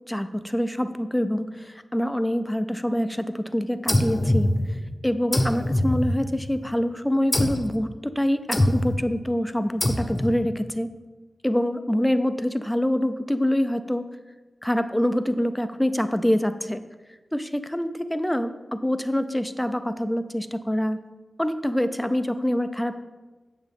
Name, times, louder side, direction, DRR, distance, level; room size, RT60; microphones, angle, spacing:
voice 1, 0.1-4.5 5.0-10.9 11.4-14.1 14.6-16.8 17.3-21.0 21.4-23.0, equal, 5° left, 10 dB, 0.4 m, -25 dB
sound 1, 3.9-4.9 5.3-6.6 7.3-7.7 8.5-9.1 9.8-10.4, left 1 dB, 25° left, 0.8 m, -24 dB
8.8 x 7.2 x 3.5 m, 1.2 s
wide cardioid pair, 95°, 0 cm